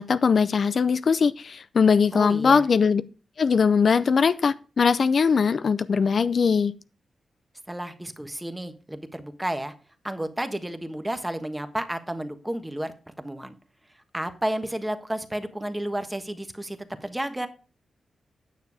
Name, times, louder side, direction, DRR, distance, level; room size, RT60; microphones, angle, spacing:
voice 1, 0.0-3.0 3.4-6.7, left 5 dB, 55° left, 14 dB, 0.5 m, -21 dB
voice 2, 2.1-2.6 7.7-9.7 10.0-13.5 14.1-17.5, right 1 dB, 10° right, 9 dB, 1.3 m, -32 dB
9.5 x 6.8 x 4.8 m, 0.35 s
cardioid pair, 85°, 0 cm